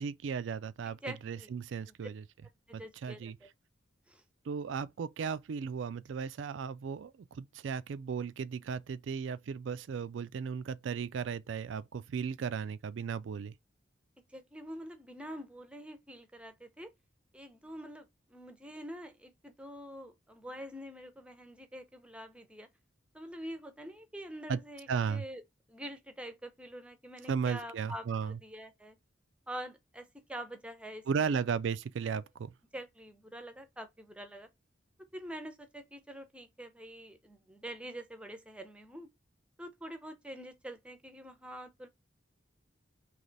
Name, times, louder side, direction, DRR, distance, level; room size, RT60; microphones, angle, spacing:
voice 1, 0.0-2.2 2.7-3.4 4.4-13.5 24.5-24.6 24.9-25.2 27.3-28.4 31.1-32.5, right 6 dB, 75° right, 0.4 m, -35 dB
voice 2, 0.9-1.5 1.9-2.0 2.7-3.3 4.1-4.2 14.3-16.9 17.3-22.7 23.1-25.4 25.7-29.0 29.5-31.0 32.7-34.5 35.1-39.1 39.6-41.9, equal, 5° right, 0.6 m, -46 dB
3.3 x 3.1 x 3.9 m
head